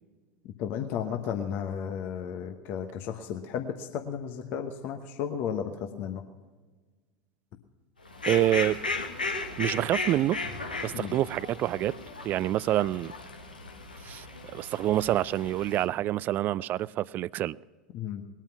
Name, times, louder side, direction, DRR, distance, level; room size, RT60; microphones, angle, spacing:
voice 1, 0.4-6.2 10.9-11.2 17.9-18.2, left 8 dB, 50° left, 1.1 m, -34 dB
Fowl, 8.0-15.8, left 3 dB, 90° left, 1.4 m, -36 dB
voice 2, 8.3-8.8 9.6-10.4 10.8-12.0 12.2-13.1 14.0-14.3 14.5-17.6, right 14 dB, 40° right, 0.4 m, -27 dB
20.0 x 9.0 x 5.9 m
figure-of-eight pair, 80°, 5 cm